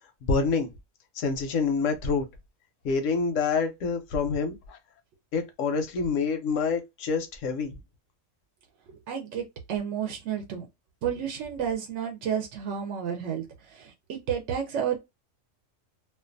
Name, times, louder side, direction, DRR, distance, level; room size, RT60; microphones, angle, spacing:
voice 1, 0.2-0.7 1.2-2.3 2.8-4.8 5.3-7.8, left 4 dB, 90° left, 1.0 m, -27 dB
voice 2, 9.1-10.7 11.0-15.0, right 8 dB, 75° right, 0.9 m, -31 dB
2.5 x 2.2 x 2.5 m
omnidirectional pair, 1.3 m